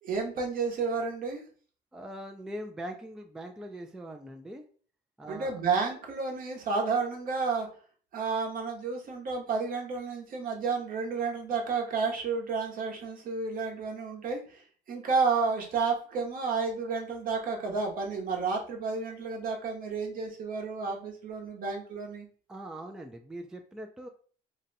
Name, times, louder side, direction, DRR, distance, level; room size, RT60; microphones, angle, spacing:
voice 1, 0.0-1.4 5.3-7.7 8.1-14.6 14.9-22.3, right 4 dB, 55° right, 2 dB, 0.9 m, -31 dB
voice 2, 1.9-4.6 5.2-5.6 22.5-24.1, right 1 dB, 5° right, 4 dB, 0.3 m, -41 dB
2.7 x 2.2 x 3.9 m, 0.44 s
cardioid pair, 110°, 17 cm